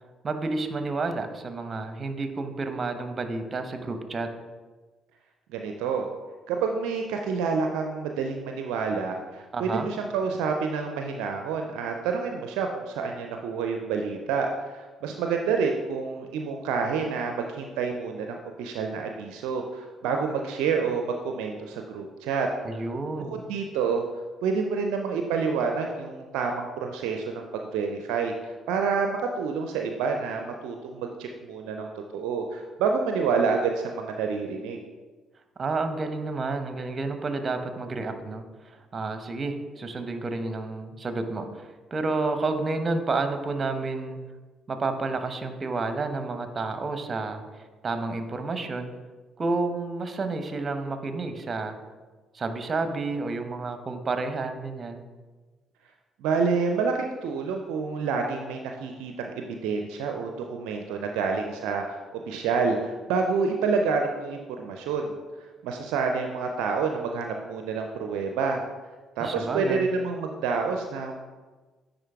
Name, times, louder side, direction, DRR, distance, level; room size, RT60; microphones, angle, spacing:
voice 1, 0.2-4.3 9.5-9.9 22.6-23.4 35.6-44.2 44.7-48.9 49.4-51.8 52.3-55.0 69.2-69.9, right 3 dB, 35° right, 8 dB, 0.8 m, -30 dB
voice 2, 5.5-6.1 6.5-22.5 23.3-24.0 24.4-34.8 56.2-65.2 65.6-68.6 69.2-71.2, right 5 dB, 70° right, 3 dB, 0.4 m, -28 dB
10.0 x 3.9 x 3.5 m, 1.3 s
hypercardioid pair, 45°, 0 cm